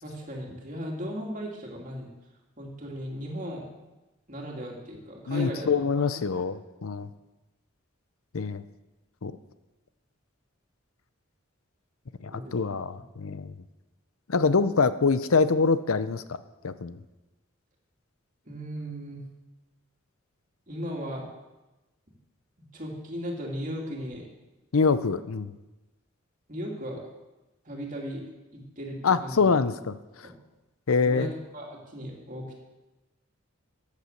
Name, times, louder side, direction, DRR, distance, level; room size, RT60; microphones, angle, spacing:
voice 1, 0.0-2.1 2.6-3.6 4.3-6.1 12.3-12.6 12.9-13.0 18.5-19.2 20.7-21.2 22.7-24.3 26.5-27.0 27.6-28.3 28.5-29.5 30.2-30.3 31.0-32.6, equal, 40° right, 0 dB, 2.7 m, -37 dB
voice 2, 5.3-7.1 8.3-8.6 9.2-9.4 12.2-13.5 14.3-16.2 16.6-17.0 24.7-25.5 29.0-29.9 30.9-31.3, left 4 dB, 90° left, 13 dB, 0.7 m, -25 dB
14.0 x 8.5 x 6.7 m, 1.1 s
head